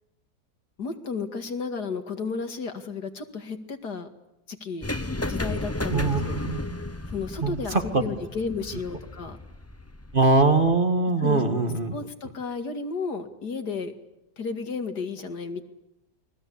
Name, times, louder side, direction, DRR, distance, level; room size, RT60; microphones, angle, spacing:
voice 1, 0.8-4.1 4.5-4.9 5.3-6.4 7.1-9.4 11.2-11.4 11.9-13.9 14.4-15.6, left 4 dB, 70° left, 7 dB, 2.7 m, -33 dB
sound 1, 4.8-10.8, left 2 dB, 10° left, 0.7 m, -33 dB
voice 2, 5.9-6.2 6.5-6.6 7.4-8.0 10.1-12.0, right 3 dB, 30° right, 6 dB, 2.1 m, -22 dB
29.5 x 22.0 x 8.6 m, 0.86 s
omnidirectional pair, 1.8 m